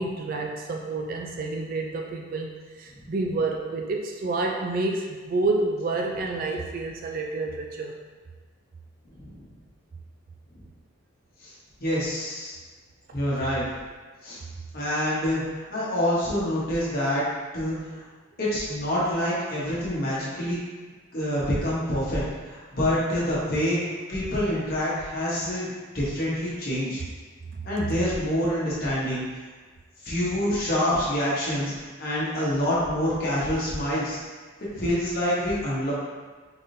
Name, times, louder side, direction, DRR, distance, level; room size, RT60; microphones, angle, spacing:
voice 1, 0.0-7.9, right 3 dB, 40° right, 1 dB, 0.3 m, -29 dB
voice 2, 11.8-12.5 13.1-13.6 14.2-14.4 14.7-15.4 15.7-17.2 17.5-17.7 18.4-20.6 21.1-27.0 27.6-29.2 30.0-34.2 34.7-35.9, equal, 45° left, -7 dB, 1.1 m, -26 dB
3.9 x 3.6 x 2.7 m, 1.4 s
head